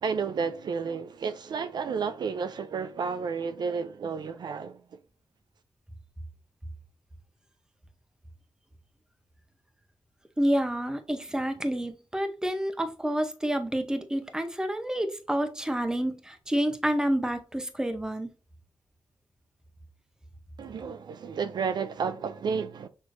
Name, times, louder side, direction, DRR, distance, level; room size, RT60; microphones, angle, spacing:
voice 1, 0.0-5.0 20.6-22.9, right 5 dB, 60° right, 0.3 m, -31 dB
voice 2, 10.4-18.3, right 1 dB, 10° right, 0.7 m, -29 dB
6.3 x 3.0 x 2.5 m
wide cardioid pair, 115°, 8 cm